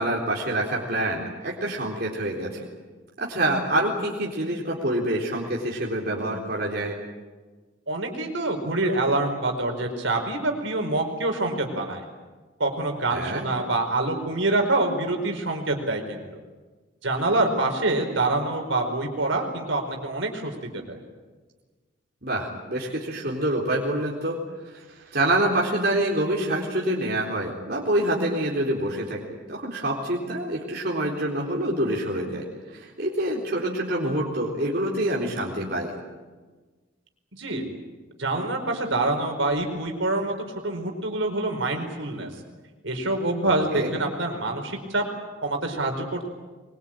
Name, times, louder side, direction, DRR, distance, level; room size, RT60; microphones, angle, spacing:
voice 1, 0.0-2.7 3.2-7.0 13.1-13.4 22.2-24.4 24.6-35.9 43.4-43.9, right 1 dB, 50° right, -2 dB, 4.0 m, -26 dB
voice 2, 7.9-12.0 12.6-16.2 17.0-21.0 37.3-37.6 38.2-40.3 40.6-42.3 42.8-45.0 45.4-46.3, right 2 dB, 70° right, 3 dB, 4.8 m, -26 dB
23.0 x 23.0 x 9.0 m, 1.3 s
head